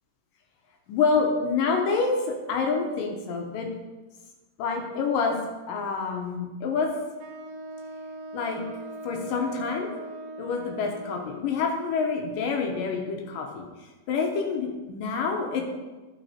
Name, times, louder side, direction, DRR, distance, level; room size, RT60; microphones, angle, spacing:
voice 1, 0.9-3.7 4.6-5.4 5.7-6.9 8.3-8.6 9.0-10.0 10.4-13.7 14.1-15.7, left 5 dB, 75° left, 2 dB, 2.5 m, -27 dB
Wind instrument woodwind instrument, 7.2-11.6, right 1 dB, 85° right, 2.7 m, -40 dB
11.5 x 5.9 x 4.3 m, 1.2 s
omnidirectional pair, 4.2 m